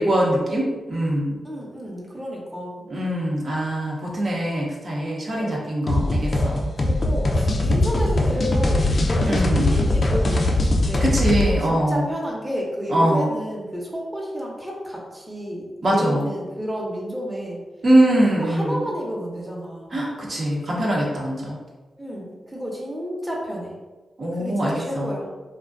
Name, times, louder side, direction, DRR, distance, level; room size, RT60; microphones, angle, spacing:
voice 1, 0.0-1.4 2.9-6.6 9.2-9.7 11.0-12.1 12.9-13.3 15.8-16.3 17.8-18.8 19.9-21.6 24.2-25.1, right 1 dB, 60° right, -4 dB, 0.7 m, -22 dB
voice 2, 1.4-2.9 5.3-5.6 5.9-6.2 6.8-15.6 15.9-17.6 18.1-19.9 22.0-23.7 24.3-25.3, equal, 10° right, -3 dB, 0.7 m, -31 dB
sound 1, 5.9-11.5, left 2 dB, 55° left, 0.3 m, -21 dB
2.4 x 2.1 x 2.4 m, 1.2 s
supercardioid pair, 45°, 0 cm